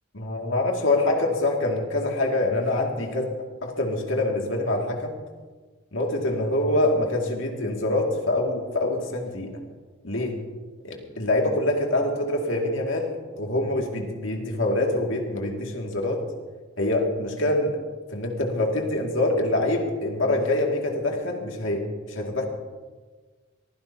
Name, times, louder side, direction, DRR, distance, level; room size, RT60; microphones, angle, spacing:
voice 1, 0.1-3.3 3.6-5.1 5.9-9.6 10.0-10.4 10.8-16.2 16.8-17.8 18.1-22.4, left 2 dB, 75° left, 1 dB, 2.3 m, -25 dB
22.5 x 15.5 x 2.8 m, 1.4 s
head